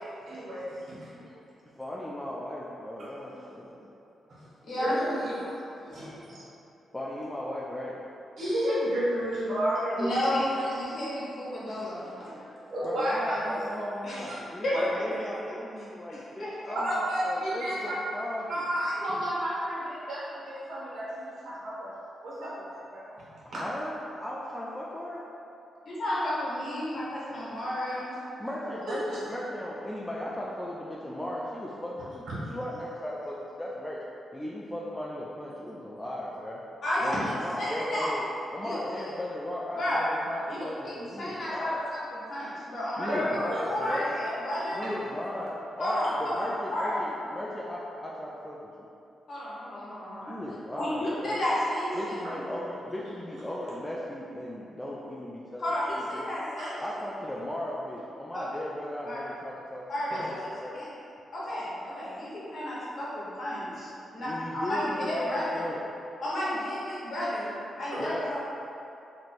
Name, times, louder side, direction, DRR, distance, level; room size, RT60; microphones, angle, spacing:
voice 1, 0.3-1.1 4.7-5.1 5.4-5.5 5.9-6.1 8.4-10.1 12.7-13.6 14.7-14.8 16.7-18.0 18.5-21.9 22.2-23.1 28.9-29.0 43.1-44.1 44.8-44.9 51.9-52.0 56.6-56.7 60.1-60.2 67.9-68.0, equal, 65° right, -9 dB, 1.5 m, -31 dB
voice 2, 1.8-3.9 6.9-8.0 12.8-18.6 23.4-25.2 28.4-34.0 34.3-36.6 37.0-38.2 38.5-41.9 43.0-44.1 44.7-48.6 50.3-51.4 51.9-55.7 55.9-56.3 56.8-59.8 60.3-60.8 64.2-65.8 68.0-68.4, left 1 dB, 10° left, -5 dB, 0.3 m, -36 dB
voice 3, 4.6-5.3 5.9-6.4 10.0-12.3 14.0-14.3 14.6-15.3 16.1-16.5 25.8-28.3 28.6-28.7 36.8-37.1 37.6-38.1 38.6-39.1 39.7-40.0 40.5-40.6 41.2-41.8 42.3-43.2 43.7-44.8 45.8-47.0 49.3-50.4 50.8-52.1 55.6-56.8 58.3-58.4 59.0-59.2 59.9-60.9 61.3-65.5 66.2-68.1, left 1 dB, 50° left, -8 dB, 1.2 m, -32 dB
3.0 x 2.6 x 4.3 m, 2.7 s
cardioid pair, 120°, 0 cm